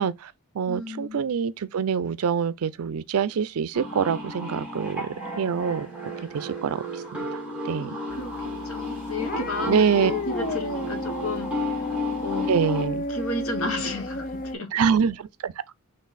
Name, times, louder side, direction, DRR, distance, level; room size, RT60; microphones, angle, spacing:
voice 1, 0.0-5.1 5.4-5.9 6.3-7.0 7.3-7.9 9.7-10.1 12.5-13.1 14.7-15.2 15.4-15.5, right 6 dB, 80° right, 0.4 m, -25 dB
voice 2, 0.7-1.2 7.8-11.8 12.2-12.5 13.1-14.8, left 2 dB, 70° left, 1.1 m, -33 dB
sound 1, 3.7-12.9, left 1 dB, 5° right, 1.7 m, -33 dB
sound 2, 8.1-14.5, left 2 dB, 40° left, 0.5 m, -33 dB
4.0 x 3.2 x 4.0 m
head